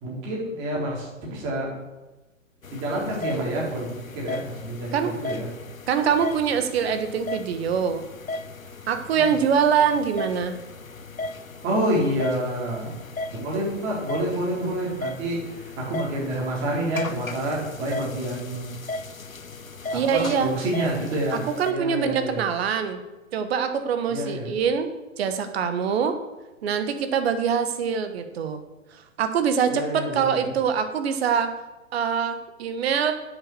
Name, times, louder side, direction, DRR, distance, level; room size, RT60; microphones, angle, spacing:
voice 1, 0.0-1.7 2.7-3.9 4.1-5.5 9.1-9.3 11.6-12.9 13.3-18.7 19.9-21.4 21.7-22.4 24.1-24.5 29.7-30.5, right 1 dB, 30° right, -4 dB, 3.9 m, -28 dB
sound 1, 2.6-21.7, left 2 dB, 90° left, 0.9 m, -36 dB
voice 2, 5.9-8.0 8.9-10.6 19.9-20.5 21.3-23.0 23.3-24.9 25.2-26.2 26.6-28.6 28.9-31.5 31.9-33.1, right 7 dB, 50° right, 8 dB, 1.6 m, -24 dB
8.8 x 7.9 x 7.0 m, 1.1 s
figure-of-eight pair, 120°, 40 cm